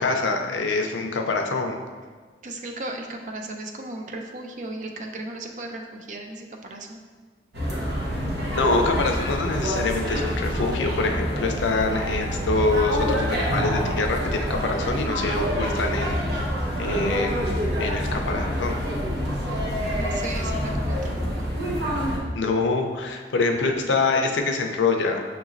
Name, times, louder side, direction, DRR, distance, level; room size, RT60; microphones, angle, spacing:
voice 1, 0.0-1.8 8.5-18.8 22.3-25.2, left 3 dB, 85° left, 4 dB, 0.5 m, -25 dB
voice 2, 2.4-7.0 19.9-21.5, right 2 dB, 40° right, 3 dB, 0.4 m, -36 dB
sound 1, 7.5-22.2, equal, 65° right, 0.9 m, -26 dB
6.2 x 3.0 x 2.5 m, 1.5 s
head